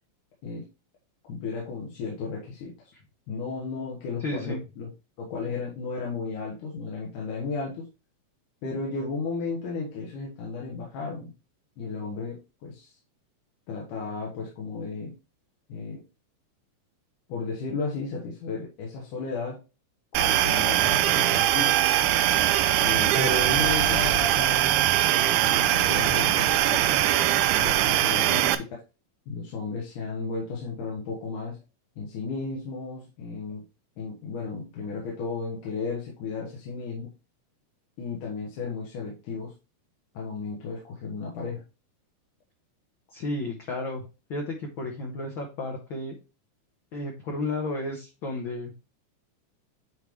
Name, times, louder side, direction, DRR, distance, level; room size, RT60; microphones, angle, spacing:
voice 1, 1.2-2.7 3.3-4.9 5.2-7.9 8.6-11.3 11.8-12.9 13.7-15.1 15.7-16.0 17.3-19.6 20.1-21.8 22.8-26.8 27.6-28.6 29.3-31.6 32.0-33.6 34.0-37.1 38.0-39.5 40.1-41.6, left 4 dB, 80° left, -3 dB, 2.8 m, -34 dB
voice 2, 4.2-4.6 43.1-44.0 44.3-46.2 46.9-48.7, left 2 dB, 65° left, 1 dB, 1.2 m, -32 dB
sound 1, 20.1-28.5, right 13 dB, 85° right, 2.0 m, -22 dB
sound 2, 22.7-25.0, left 3 dB, 50° left, 0.9 m, -39 dB
9.7 x 3.5 x 3.1 m, 0.30 s
omnidirectional pair, 3.5 m